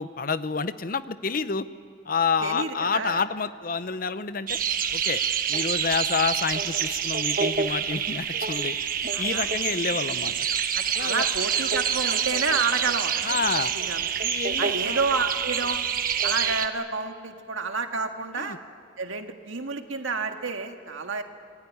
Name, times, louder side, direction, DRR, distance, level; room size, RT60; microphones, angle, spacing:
voice 1, 0.0-1.7 2.1-4.6 4.9-5.2 5.5-8.8 9.0-10.5 10.9-11.3 13.2-13.7 14.2-15.0 18.4-18.6, left 5 dB, 45° left, 14 dB, 0.7 m, -28 dB
voice 2, 2.4-3.2 9.1-9.5 10.7-14.1 14.6-15.8 16.2-18.6 19.0-21.2, right 4 dB, 80° right, 5 dB, 1.9 m, -30 dB
sound 1, 4.5-16.7, right 8 dB, 45° right, 1.1 m, -27 dB
26.5 x 19.5 x 9.6 m, 2.3 s
head